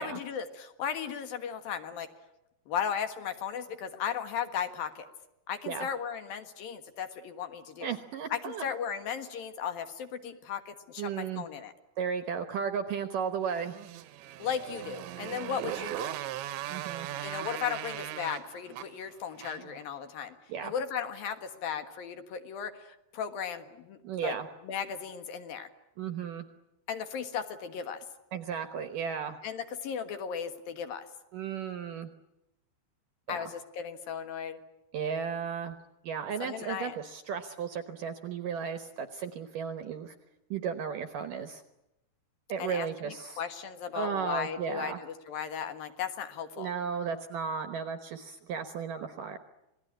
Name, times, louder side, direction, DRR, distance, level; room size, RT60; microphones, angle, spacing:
voice 1, 0.0-2.1 2.7-5.1 5.5-7.9 8.3-11.7 14.4-16.2 17.2-20.4 20.6-24.4 24.6-25.7 26.9-28.0 29.4-31.0 33.3-34.6 36.4-37.0 42.6-46.7, left 7 dB, 65° left, 8 dB, 2.9 m, -36 dB
voice 2, 7.8-8.6 11.0-11.5 12.0-13.8 16.7-17.1 20.5-20.7 24.0-24.5 26.0-26.5 28.3-29.4 31.3-32.1 33.3-33.5 34.9-35.8 36.0-40.2 40.5-41.6 42.5-43.4 43.9-45.0 46.6-49.4, right 7 dB, 70° right, 9 dB, 2.2 m, -34 dB
Motorcycle, 13.5-19.8, right 13 dB, 90° right, 3.4 m, -39 dB
27.5 x 19.5 x 9.9 m, 0.90 s
omnidirectional pair, 5.0 m